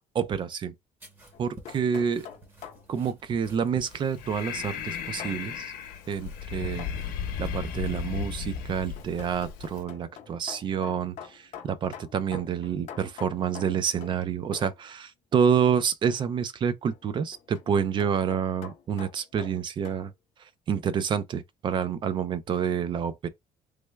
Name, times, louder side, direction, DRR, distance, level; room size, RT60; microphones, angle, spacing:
voice 1, 0.1-0.7 1.4-2.3 2.9-5.7 6.1-6.9 7.4-20.1 20.4-23.3, right 7 dB, 35° right, 0.4 m, -28 dB
sound 1, 1.0-8.4, right 2 dB, 15° right, 0.8 m, -52 dB
sound 2, 1.3-2.9 5.2-5.4 6.8-7.1 8.4-14.3 14.5-14.8 16.9-20.0, left 8 dB, 55° left, 0.7 m, -45 dB
Breathing, 3.8-9.8, left 7 dB, 85° left, 0.8 m, -35 dB
3.2 x 2.2 x 3.2 m
cardioid pair, 160°, 14 cm